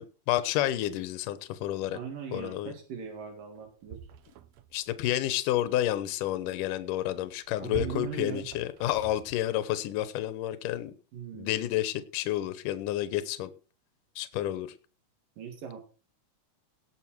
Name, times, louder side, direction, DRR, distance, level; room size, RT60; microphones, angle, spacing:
voice 1, 0.0-2.0 2.3-2.7 4.7-10.9 11.3-13.5 14.2-14.7, left 13 dB, 80° left, 12 dB, 2.5 m, -30 dB
voice 2, 1.9-4.0 7.6-8.5 11.1-11.5 15.4-15.8, right 7 dB, 85° right, 3 dB, 3.9 m, -39 dB
sound 1, 3.2-3.3 3.6-4.9 7.2-9.6 10.3-10.4, right 10 dB, 70° right, 1.9 m, -45 dB
18.0 x 7.0 x 4.6 m, 0.35 s
omnidirectional pair, 3.8 m